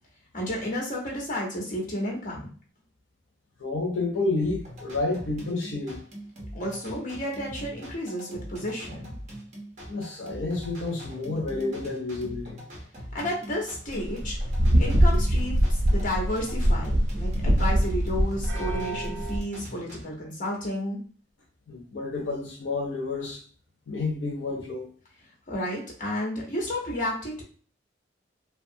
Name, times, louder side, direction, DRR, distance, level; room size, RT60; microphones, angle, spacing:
voice 1, 0.3-2.5 6.5-9.2 13.1-14.4 14.8-21.0 25.5-27.4, left 1 dB, 45° left, 0.9 m, -32 dB
voice 2, 3.6-6.0 9.9-12.6 21.7-23.4 23.9-24.9, left 3 dB, 85° left, 0.6 m, -30 dB
sound 1, 4.4-20.0, equal, 40° right, 0.9 m, -42 dB
sound 2, 13.9-19.4, equal, 80° right, 0.7 m, -23 dB
2.8 x 2.2 x 2.6 m
head